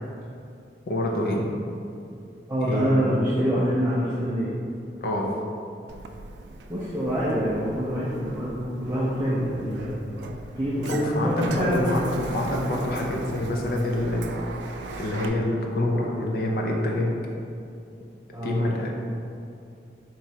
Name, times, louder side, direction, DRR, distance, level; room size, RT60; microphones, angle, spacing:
voice 1, 0.9-1.4 2.6-3.1 5.0-5.3 10.7-14.3 15.0-17.1 18.4-19.0, left 1 dB, 55° left, 0 dB, 0.5 m, -27 dB
voice 2, 2.5-4.5 6.7-10.0 10.5-11.9 18.3-18.8, equal, 15° right, -9 dB, 0.5 m, -25 dB
Sliding door, 5.9-15.3, right 3 dB, 80° right, 0.3 m, -38 dB
4.5 x 3.0 x 2.8 m, 2.5 s
head